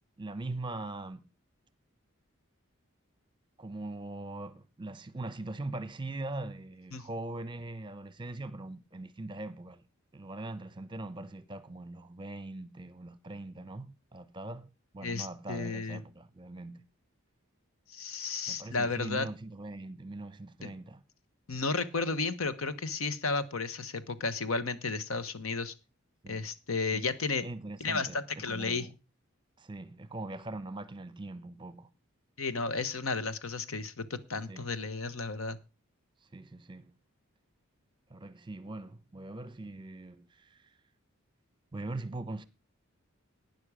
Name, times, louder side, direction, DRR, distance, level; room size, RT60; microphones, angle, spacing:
voice 1, 0.2-1.2 3.6-9.8 10.1-14.7 14.9-16.8 18.5-21.0 26.2-26.5 26.9-27.0 27.4-28.9 29.6-31.9 34.5-34.7 36.3-36.9 38.1-40.6 41.7-42.4, right 2 dB, 20° right, 0.9 m, -41 dB
voice 2, 15.0-16.0 17.9-19.3 20.6-20.7 21.5-25.7 26.3-27.5 27.8-28.9 32.4-35.6, left 4 dB, 80° left, 1.1 m, -33 dB
12.0 x 9.5 x 4.9 m
head